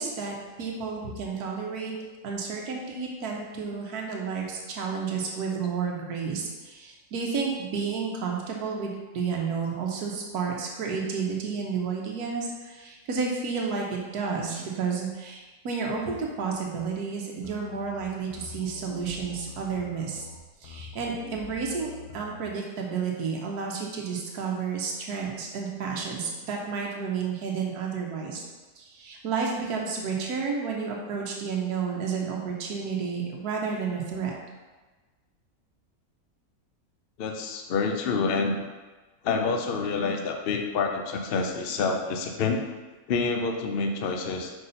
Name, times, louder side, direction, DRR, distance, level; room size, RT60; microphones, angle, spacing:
voice 1, 0.0-1.9 2.2-20.3 20.6-28.4 28.7-34.3, right 5 dB, 85° right, -1 dB, 1.4 m, -31 dB
sound 1, 17.4-22.5, left 5 dB, 80° left, 1.2 m, -45 dB
voice 2, 37.2-38.6 39.2-42.6 43.1-44.5, left 4 dB, 60° left, 3 dB, 0.6 m, -27 dB
5.5 x 4.8 x 4.0 m, 1.3 s
omnidirectional pair, 1.6 m